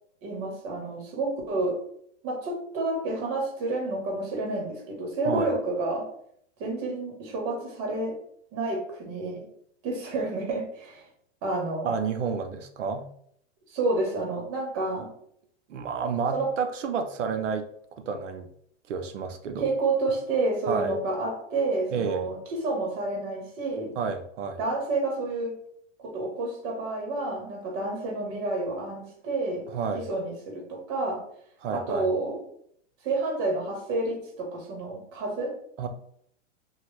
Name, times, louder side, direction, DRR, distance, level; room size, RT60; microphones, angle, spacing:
voice 1, 0.2-1.8 2.2-6.1 6.6-8.2 8.5-9.5 9.8-11.1 11.4-11.9 13.7-15.1 16.3-16.5 19.6-23.9 24.6-25.5 26.0-29.7 29.9-31.2 31.7-32.4 33.0-35.6, right 2 dB, 35° right, 1 dB, 1.2 m, -29 dB
voice 2, 11.8-13.1 15.7-18.5 18.9-19.7 20.7-21.0 21.9-22.3 24.0-24.6 29.7-30.1 31.6-32.1 35.8-35.9, right 5 dB, 85° right, 7 dB, 0.6 m, -30 dB
3.0 x 2.3 x 3.2 m, 0.67 s
hypercardioid pair, 130°, 36 cm